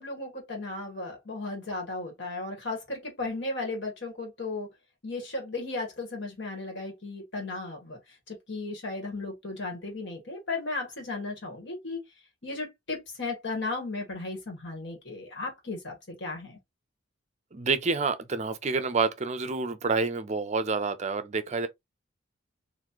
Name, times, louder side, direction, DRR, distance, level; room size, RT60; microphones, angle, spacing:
voice 1, 0.0-4.7 5.0-8.0 8.3-12.0 12.4-16.6, left 3 dB, 60° left, 1.7 m, -35 dB
voice 2, 17.5-21.7, right 4 dB, 35° right, 0.5 m, -28 dB
4.2 x 2.6 x 2.9 m
head